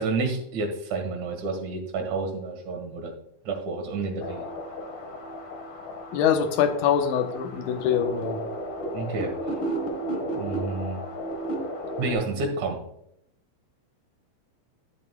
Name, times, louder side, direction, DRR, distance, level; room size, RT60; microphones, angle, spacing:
voice 1, 0.0-3.1 3.4-4.4 8.9-9.3 10.4-11.0 12.0-12.8, right 3 dB, 65° right, 3 dB, 3.1 m, -29 dB
sound 1, 4.2-12.1, right 1 dB, 50° left, 1.8 m, -33 dB
voice 2, 6.1-8.4, left 8 dB, 75° left, 6 dB, 2.4 m, -24 dB
12.5 x 7.5 x 2.3 m, 0.74 s
omnidirectional pair, 3.7 m